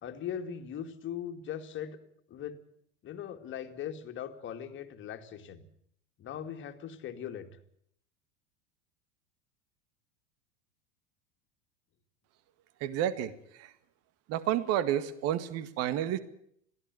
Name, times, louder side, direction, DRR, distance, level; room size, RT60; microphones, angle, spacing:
voice 1, 0.0-2.0 2.3-2.6 3.0-5.7 6.2-7.5, left 9 dB, 30° left, 7 dB, 2.5 m, -40 dB
voice 2, 12.8-13.3 13.6-13.7 14.3-16.2, right 11 dB, 40° right, 15 dB, 1.9 m, -30 dB
22.5 x 16.0 x 9.3 m, 0.68 s
figure-of-eight pair, 85°, 36 cm